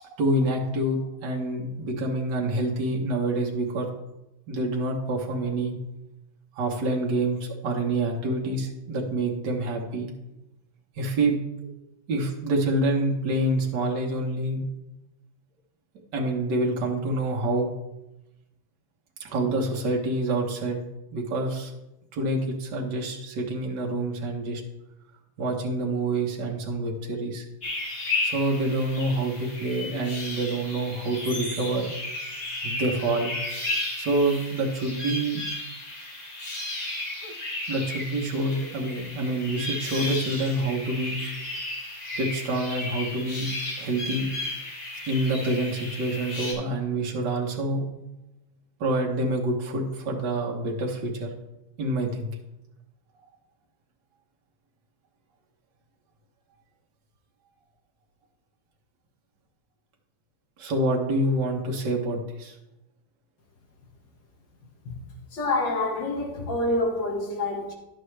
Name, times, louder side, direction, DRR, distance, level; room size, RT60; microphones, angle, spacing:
voice 1, 0.2-3.9 4.5-5.7 6.5-10.1 11.0-11.7 12.1-14.6 16.1-17.7 19.2-20.8 21.1-21.7 22.1-24.6 25.4-27.5 28.2-31.9 32.6-33.3 34.0-35.4 37.2-37.3 37.7-41.2 42.2-43.5 43.8-44.3 45.1-47.9 48.8-51.3 51.8-52.3 60.6-62.6, right 1 dB, 70° right, 1.7 m, -27 dB
sound 1, 27.6-46.5, left 2 dB, 40° left, 2.7 m, -34 dB
voice 2, 65.3-67.7, left 2 dB, 80° left, 2.4 m, -27 dB
11.0 x 7.7 x 3.2 m
omnidirectional pair, 1.9 m